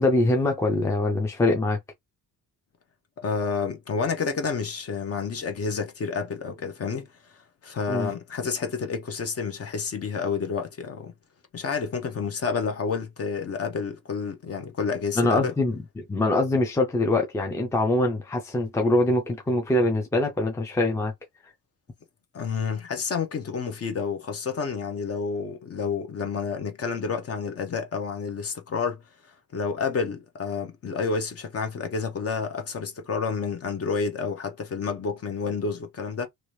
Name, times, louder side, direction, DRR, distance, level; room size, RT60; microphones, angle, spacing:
voice 1, 0.0-1.8 7.9-8.1 15.2-21.1, left 2 dB, 10° left, 0.5 m, -23 dB
voice 2, 3.2-7.1 7.6-11.1 11.5-15.5 22.3-29.0 29.5-36.3, left 5 dB, 40° left, 0.8 m, -29 dB
2.9 x 2.6 x 3.2 m
cardioid pair, 160°, 38 cm